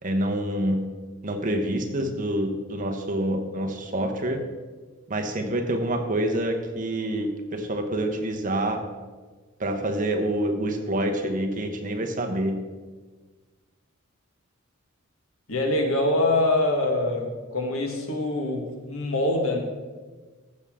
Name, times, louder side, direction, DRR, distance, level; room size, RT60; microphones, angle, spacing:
voice 1, 0.0-0.8 1.2-4.4 5.1-8.8 9.6-12.6, right 1 dB, 40° right, 4 dB, 1.1 m, -27 dB
voice 2, 15.5-19.6, left 2 dB, 80° left, 3 dB, 1.7 m, -24 dB
14.5 x 7.1 x 3.7 m, 1.4 s
head